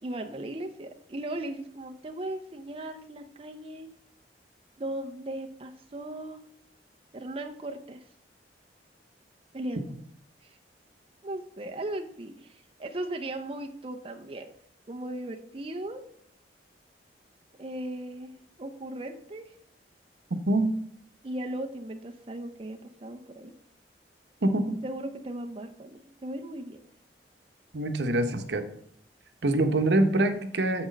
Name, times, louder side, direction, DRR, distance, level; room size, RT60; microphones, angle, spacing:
voice 1, 0.0-3.9 4.8-6.4 7.1-8.0 9.5-9.9 10.4-10.6 11.2-14.5 14.9-16.0 17.6-19.6 21.2-23.5 24.8-26.8, right 1 dB, 30° right, 4 dB, 0.6 m, -37 dB
voice 2, 20.3-20.7 24.4-24.8 27.7-28.6 29.4-30.9, right 1 dB, 75° right, 8 dB, 0.9 m, -25 dB
7.3 x 6.1 x 5.1 m, 0.66 s
head